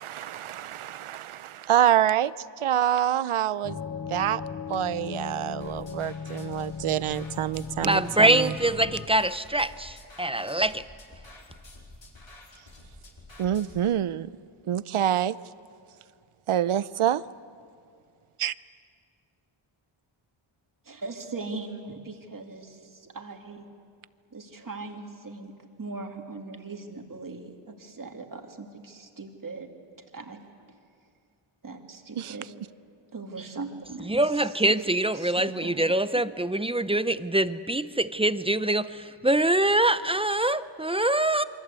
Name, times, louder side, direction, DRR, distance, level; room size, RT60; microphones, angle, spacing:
voice 1, 0.0-3.8 4.1-4.4 4.7-8.5 13.4-14.3 14.7-15.4 16.5-17.2 18.4-18.5 32.2-32.5, right 11 dB, 75° right, 17 dB, 0.7 m, -26 dB
sound 1, 3.6-9.1, left 6 dB, 40° left, 0.8 m, -37 dB
sound 2, 5.6-13.8, left 2 dB, 60° left, 4.6 m, -49 dB
voice 2, 7.8-10.8 34.1-41.4, right 1 dB, 10° right, 14 dB, 0.6 m, -24 dB
voice 3, 20.9-23.6 24.3-25.5 25.8-29.7 30.1-30.4 31.6-32.5 33.1-34.1 34.7-34.8 35.1-35.8 36.1-36.3, right 3 dB, 40° right, 3 dB, 2.4 m, -39 dB
27.5 x 24.0 x 8.3 m, 2.3 s
wide cardioid pair, 120°, 50 cm